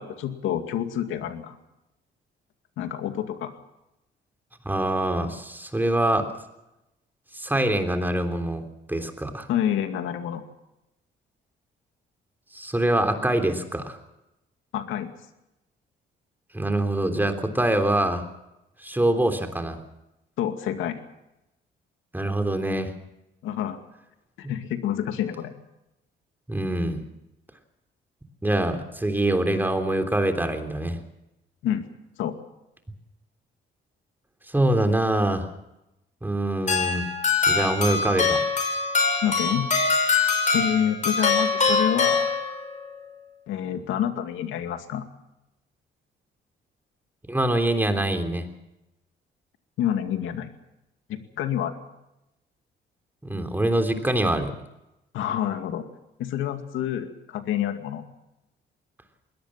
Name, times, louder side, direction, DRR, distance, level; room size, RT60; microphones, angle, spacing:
voice 1, 0.0-1.6 2.8-3.5 9.5-10.4 14.7-15.1 20.4-21.0 23.4-23.8 24.4-25.5 31.6-31.8 32.2-32.3 39.2-39.7 40.5-42.4 43.5-45.0 49.8-50.5 51.1-51.8 55.1-55.8 56.2-58.0, left 10 dB, 90° left, 7 dB, 2.3 m, -28 dB
voice 2, 4.6-6.3 7.3-8.6 8.9-9.5 12.5-14.0 16.5-18.2 18.8-19.8 22.1-22.9 24.4-24.5 26.5-27.0 28.4-31.0 34.5-35.5 36.2-37.1 37.5-38.4 47.3-48.4 53.2-54.5, right 1 dB, 10° right, 6 dB, 3.4 m, -24 dB
sound 1, 36.7-42.8, left 4 dB, 40° left, 6.2 m, -23 dB
21.5 x 18.0 x 7.4 m, 0.91 s
cardioid pair, 90°, 20 cm